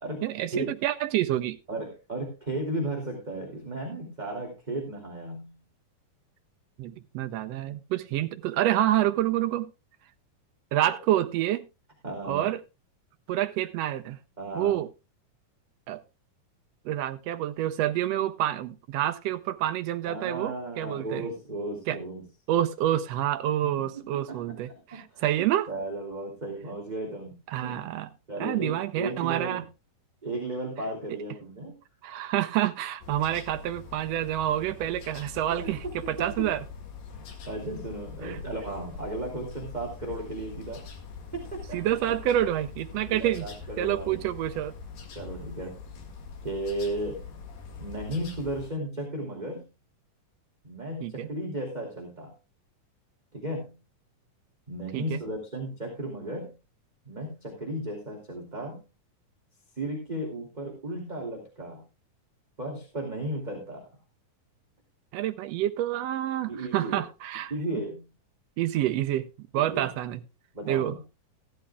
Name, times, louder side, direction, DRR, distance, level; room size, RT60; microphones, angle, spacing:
voice 1, 0.2-1.6 6.8-9.7 10.7-11.7 12.3-12.6 13.3-14.2 14.5-14.9 15.9-16.0 16.8-21.2 21.9-22.0 22.5-25.7 27.5-28.1 28.4-29.6 32.0-36.6 38.2-38.4 41.7-43.5 43.8-44.7 51.0-51.3 54.9-55.2 65.1-67.5 68.6-69.3 69.5-70.2 70.6-70.9, right 12 dB, 85° right, 1.4 m, -28 dB
voice 2, 1.7-5.6 12.0-12.5 14.4-14.8 20.0-22.2 23.6-27.8 28.3-29.6 30.2-31.8 35.5-36.5 37.5-40.8 41.3-42.0 43.1-44.2 45.1-45.7 46.4-47.2 47.8-49.7 50.6-52.3 53.3-53.8 54.7-56.6 57.0-58.8 59.8-61.8 62.6-63.9 66.5-67.0 67.5-68.1 69.5-69.9 70.5-71.0, right 1 dB, 15° right, 2.6 m, -35 dB
sound 1, 33.0-48.7, left 5 dB, 85° left, 3.7 m, -43 dB
16.0 x 12.5 x 2.3 m
omnidirectional pair, 3.8 m